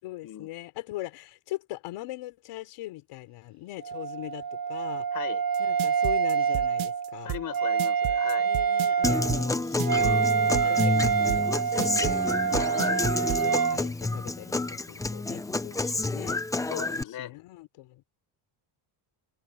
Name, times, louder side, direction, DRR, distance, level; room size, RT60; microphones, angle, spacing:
voice 1, 0.0-5.1 5.6-7.3 8.4-12.2 12.6-16.4 16.9-18.1, left 17 dB, 80° left, 3.9 m, -41 dB
Wind instrument woodwind instrument, 3.8-13.8, right 7 dB, 45° right, 2.5 m, -27 dB
voice 2, 5.1-5.4 7.2-8.5 12.5-13.6 16.6-17.4, left 11 dB, 40° left, 5.2 m, -39 dB
sound 1, 5.5-13.4, right 15 dB, 70° right, 1.7 m, -33 dB
Human voice / Acoustic guitar, 9.0-17.0, left 2 dB, 5° left, 0.6 m, -29 dB
cardioid pair, 170°, 50 cm